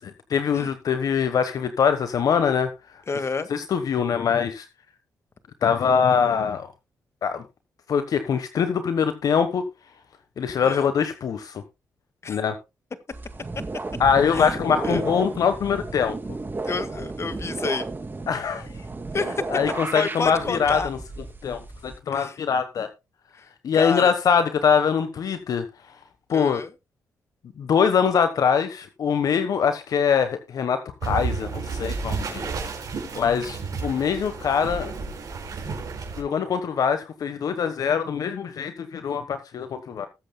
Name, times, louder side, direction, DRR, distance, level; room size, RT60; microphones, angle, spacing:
voice 1, 0.3-2.7 3.5-4.7 5.6-6.7 7.2-7.4 7.9-9.6 10.4-11.6 12.3-12.6 14.0-16.1 18.3-18.8 19.5-21.0 21.4-22.9 23.6-25.6 26.3-26.6 27.6-32.5 33.1-34.9 36.2-40.1, left 7 dB, 65° left, 9 dB, 1.2 m, -23 dB
voice 2, 3.1-3.5 10.6-10.9 12.2-12.4 14.3-14.6 14.8-15.0 16.6-17.9 19.1-19.4 19.9-20.9 22.1-22.4 23.3-23.5 23.7-24.1 26.3-26.7, left 4 dB, 45° left, 11 dB, 1.7 m, -29 dB
sound 1, 13.1-22.0, right 3 dB, 30° right, 3.0 m, -33 dB
sound 2, 31.0-36.2, right 4 dB, 70° right, 5.1 m, -31 dB
20.5 x 8.0 x 2.2 m, 0.25 s
supercardioid pair, 50°, 7 cm